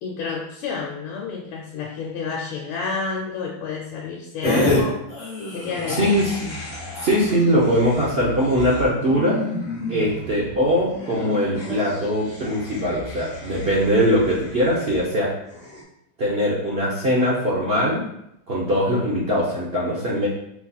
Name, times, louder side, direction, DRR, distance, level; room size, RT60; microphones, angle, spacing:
voice 1, 0.0-5.0 5.5-6.1, left 4 dB, 80° left, -2 dB, 1.4 m, -30 dB
sound 1, 4.4-4.8 5.1-15.0 15.5-15.8, left 2 dB, 45° left, 0.5 m, -30 dB
voice 2, 5.9-6.3 7.0-9.4 9.9-15.3 16.2-18.0 18.5-20.3, equal, 70° right, -6 dB, 0.5 m, -21 dB
4.6 x 4.1 x 2.3 m, 0.78 s
omnidirectional pair, 2.2 m